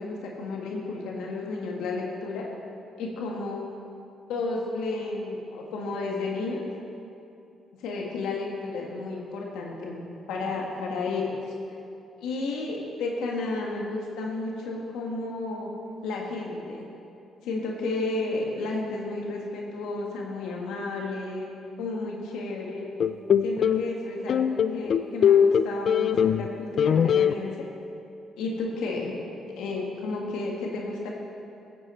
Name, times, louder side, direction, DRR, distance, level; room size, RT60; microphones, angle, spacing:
voice 1, 0.0-2.4 3.0-3.7 4.3-6.6 7.8-11.4 12.2-15.7 16.0-16.8 17.4-21.5 21.8-22.9 23.4-27.7 28.4-29.1 29.5-31.1, left 3 dB, 90° left, -1 dB, 1.5 m, -32 dB
sound 1, 23.0-23.9 24.3-26.5 26.8-27.3, left 8 dB, 60° left, 0.4 m, -21 dB
15.0 x 8.2 x 4.3 m, 2.7 s
cardioid pair, 90°, 0 cm